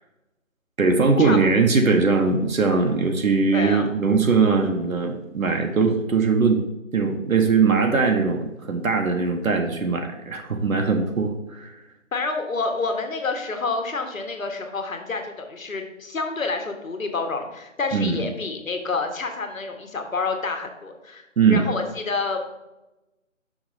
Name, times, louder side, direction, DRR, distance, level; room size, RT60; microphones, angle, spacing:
voice 1, 0.8-6.6 6.9-11.7 17.9-18.3 21.4-21.6, right 4 dB, 90° right, 4 dB, 1.2 m, -20 dB
voice 2, 3.5-3.9 12.1-22.4, left 3 dB, 80° left, 5 dB, 1.3 m, -28 dB
5.8 x 5.1 x 4.2 m, 0.98 s
figure-of-eight pair, 180°, 40 cm